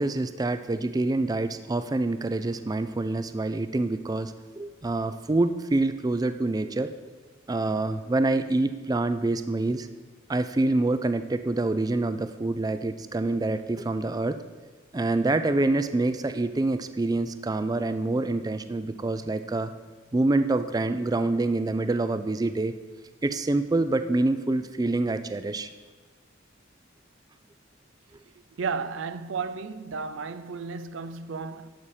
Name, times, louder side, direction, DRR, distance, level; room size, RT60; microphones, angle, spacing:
voice 1, 0.0-6.9 7.5-9.9 10.3-14.4 14.9-19.7 20.1-22.8 23.2-25.7, right 2 dB, 20° right, 0.4 m, -26 dB
voice 2, 28.5-31.7, right 5 dB, 85° right, 0.5 m, -33 dB
11.5 x 4.2 x 7.1 m
head